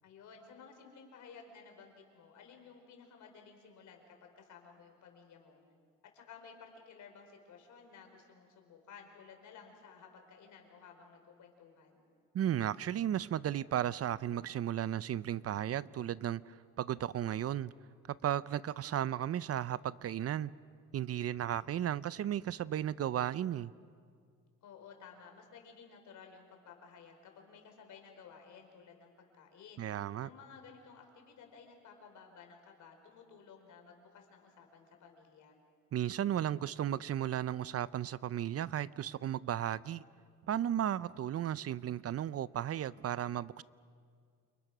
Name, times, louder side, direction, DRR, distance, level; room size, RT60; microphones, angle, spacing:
voice 1, 0.0-5.6 6.1-12.0 24.6-29.9 30.2-35.6, left 6 dB, 75° left, 4.8 m, -55 dB
voice 2, 12.3-17.7 18.1-20.5 20.9-23.7 29.8-30.3 35.9-40.0 40.5-43.6, right 11 dB, 55° right, 0.6 m, -34 dB
29.0 x 28.5 x 6.1 m
cardioid pair, 90°, 30 cm